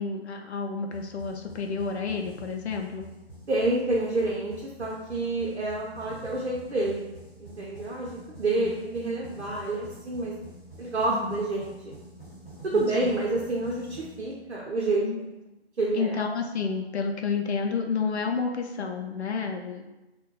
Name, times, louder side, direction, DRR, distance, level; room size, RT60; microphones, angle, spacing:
voice 1, 0.0-3.1 8.6-8.7 11.1-11.5 12.7-13.1 15.0-15.3 15.9-19.9, left 5 dB, 80° left, 3 dB, 0.5 m, -30 dB
sound 1, 0.9-14.8, right 1 dB, 15° right, 0.9 m, -47 dB
voice 2, 3.5-7.1 7.4-8.1 8.4-10.3 10.8-11.9 12.7-15.2 15.8-16.2, right 2 dB, 80° right, -3 dB, 0.6 m, -28 dB
2.2 x 2.2 x 3.0 m, 1.0 s
figure-of-eight pair, 170°, 33 cm